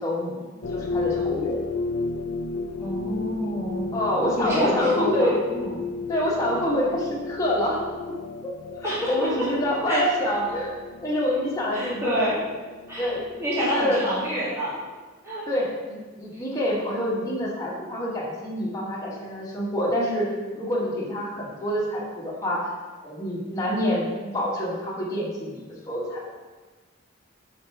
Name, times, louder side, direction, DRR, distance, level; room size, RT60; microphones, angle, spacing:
voice 1, 0.0-1.6 3.9-5.4 6.1-7.8 8.4-8.5 8.8-10.7 11.0-12.3 13.0-13.3 13.7-14.0 15.5-20.3 20.5-22.7 23.0-25.6 25.9-26.3, left 1 dB, 15° left, -6 dB, 1.3 m, -26 dB
sound 1, 0.6-13.8, left 3 dB, 75° left, 0.4 m, -33 dB
voice 2, 2.8-3.9 4.4-5.8 8.8-9.5 9.9-10.1 11.7-12.4 12.9-13.1 13.4-14.8 15.2-15.4 16.3-16.4, right 1 dB, 15° right, -10 dB, 2.0 m, -27 dB
5.2 x 5.1 x 4.6 m, 1.3 s
head